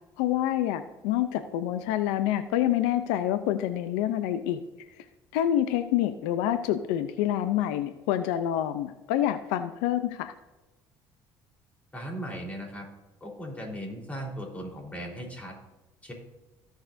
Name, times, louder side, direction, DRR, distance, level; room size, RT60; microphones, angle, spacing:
voice 1, 0.2-4.6 5.3-10.3, left 12 dB, 85° left, 10 dB, 0.5 m, -27 dB
voice 2, 11.9-12.8 13.2-15.5 16.0-16.1, equal, 15° left, -1 dB, 3.8 m, -37 dB
18.0 x 6.5 x 2.6 m, 1.1 s
supercardioid pair, 80°, 9 cm